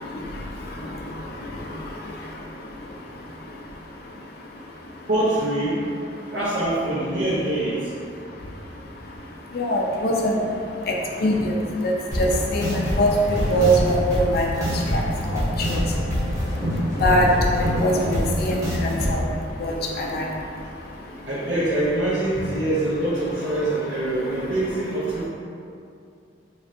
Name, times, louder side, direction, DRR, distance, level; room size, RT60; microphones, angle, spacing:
voice 1, 5.1-5.8 6.3-7.9 19.9-20.1 21.2-25.2, right 1 dB, 75° right, -10 dB, 0.7 m, -24 dB
voice 2, 9.5-10.3 11.2-11.5 11.8-11.9 12.2-13.1 13.5-14.5 14.9-15.0 15.7-15.8 17.0-17.3 17.8-18.6 18.8-19.2 19.6-20.2, equal, 55° left, -1 dB, 0.4 m, -22 dB
sound 1, 12.1-19.1, equal, 20° right, 0.9 m, -25 dB
3.1 x 2.5 x 2.5 m, 2.5 s
head